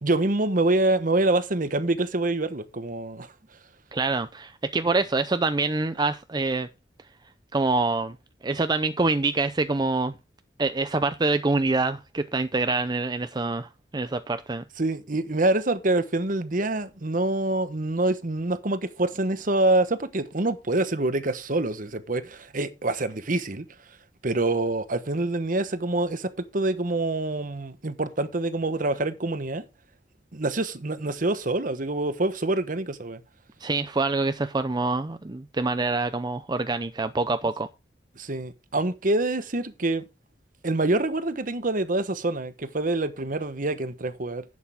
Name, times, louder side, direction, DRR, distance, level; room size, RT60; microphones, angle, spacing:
voice 1, 0.0-3.3 14.8-23.6 24.2-29.6 30.3-33.2 38.2-40.0 40.6-44.4, right 2 dB, 50° right, 1.1 m, -26 dB
voice 2, 3.9-6.7 7.5-8.2 8.4-10.1 10.6-14.6 33.6-37.7, right 3 dB, 25° right, 0.6 m, -26 dB
11.0 x 8.3 x 3.6 m
head